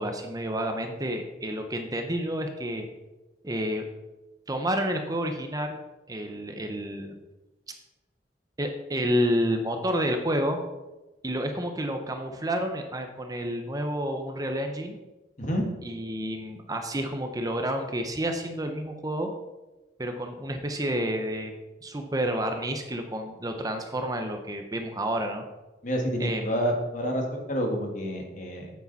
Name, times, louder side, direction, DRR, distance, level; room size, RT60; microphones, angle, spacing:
voice 1, 0.0-2.8 3.4-3.8 4.5-5.8 6.1-7.2 8.6-10.6 11.2-14.9 15.8-19.3 20.0-21.5 21.8-25.4 26.2-26.5, equal, 20° right, 5 dB, 0.8 m, -29 dB
voice 2, 25.8-28.7, equal, 45° left, 1 dB, 1.8 m, -28 dB
8.6 x 8.5 x 4.1 m, 1.1 s
head